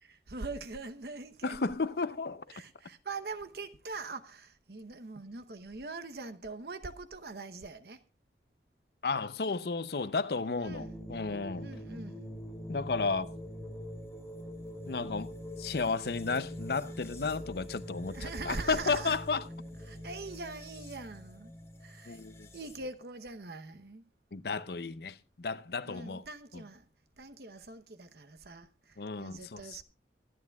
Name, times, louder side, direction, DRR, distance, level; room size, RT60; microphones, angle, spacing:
voice 1, 0.0-1.7 2.5-8.0 10.6-11.0 11.6-12.3 17.9-19.2 19.8-21.5 21.8-22.2 22.5-24.1 25.8-26.9 27.2-29.8, right 3 dB, 65° right, 0.9 m, -43 dB
voice 2, 1.4-2.4 9.0-11.7 12.7-13.3 14.9-19.4 22.1-22.5 24.3-26.2 26.5-26.6 29.0-29.6, left 4 dB, 65° left, 0.6 m, -33 dB
sound 1, 10.6-22.9, equal, 15° left, 2.7 m, -44 dB
23.5 x 9.6 x 2.3 m
head